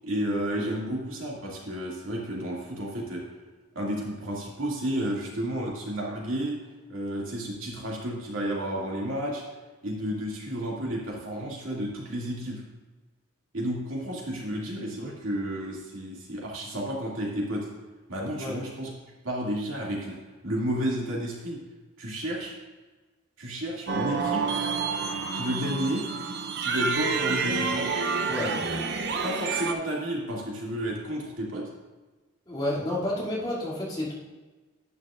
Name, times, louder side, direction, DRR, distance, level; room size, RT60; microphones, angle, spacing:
voice 1, 0.0-3.2 3.7-6.6 6.9-9.4 9.8-12.6 13.5-17.7 18.1-18.9 19.2-20.2 20.4-21.6 22.0-22.5 23.4-24.6 25.3-26.1 26.6-27.9 29.2-31.6, equal, 75° right, -4 dB, 2.3 m, -31 dB
sound 1, 23.9-29.7, right 4 dB, 50° right, 0.7 m, -28 dB
voice 2, 32.5-34.1, left 1 dB, 25° left, -8 dB, 2.6 m, -30 dB
11.0 x 9.5 x 2.5 m, 1.2 s
head